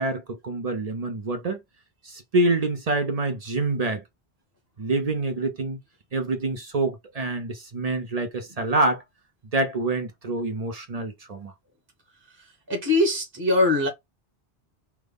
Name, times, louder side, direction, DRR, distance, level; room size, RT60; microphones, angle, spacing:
voice 1, 0.0-1.6 2.0-4.0 4.8-5.8 6.1-9.0 9.5-11.5, right 2 dB, 45° right, 0.6 m, -26 dB
voice 2, 12.3-13.9, left 2 dB, 25° right, 0.9 m, -23 dB
3.3 x 2.1 x 3.5 m
omnidirectional pair, 1.1 m